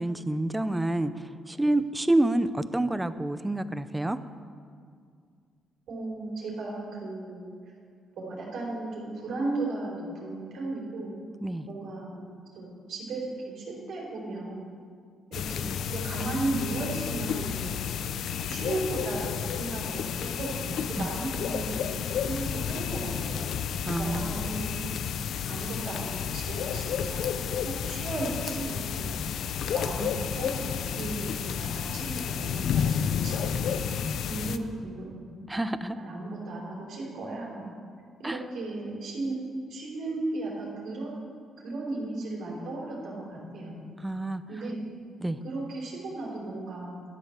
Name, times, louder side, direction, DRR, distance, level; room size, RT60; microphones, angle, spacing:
voice 1, 0.0-4.2 11.4-11.7 21.0-21.1 23.8-24.3 35.5-36.0 38.2-38.4 44.0-44.4 45.2-45.4, right 1 dB, 10° right, 12 dB, 0.6 m, -28 dB
voice 2, 5.9-7.5 8.2-11.2 11.7-12.3 12.5-14.7 15.3-18.0 18.3-23.6 24.0-24.9 25.4-27.2 27.6-29.2 29.7-35.3 36.0-37.7 38.2-39.4 39.7-41.1 41.6-43.9 44.5-44.8 45.4-47.0, right 2 dB, 75° right, -4 dB, 4.2 m, -35 dB
sound 1, 15.3-34.6, left 8 dB, 70° left, 0.5 m, -31 dB
Tick, 26.4-32.4, left 4 dB, 35° left, 1.1 m, -47 dB
12.5 x 9.5 x 6.7 m, 2.2 s
cardioid pair, 90°, 0 cm